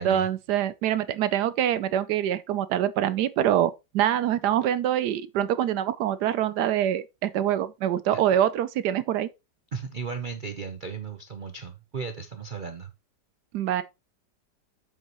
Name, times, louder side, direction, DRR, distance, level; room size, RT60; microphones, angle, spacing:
voice 1, 0.0-9.3 13.5-13.8, right 11 dB, 75° right, 1.1 m, -25 dB
voice 2, 9.7-12.9, right 5 dB, 50° right, 0.6 m, -35 dB
8.0 x 7.4 x 3.0 m
omnidirectional pair, 1.9 m